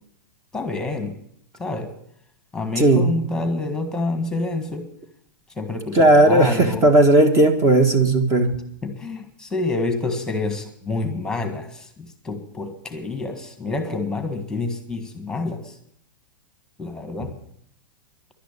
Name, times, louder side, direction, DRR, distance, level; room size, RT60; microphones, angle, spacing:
voice 1, 0.5-1.1 1.6-1.9 2.5-4.9 5.6-6.9 8.8-15.7 16.8-17.3, left 3 dB, 5° left, 6 dB, 1.6 m, -28 dB
voice 2, 2.8-3.1 5.9-8.5, right 2 dB, 25° right, 8 dB, 1.5 m, -15 dB
11.5 x 10.0 x 8.7 m, 0.68 s
hypercardioid pair, 130°, 11 cm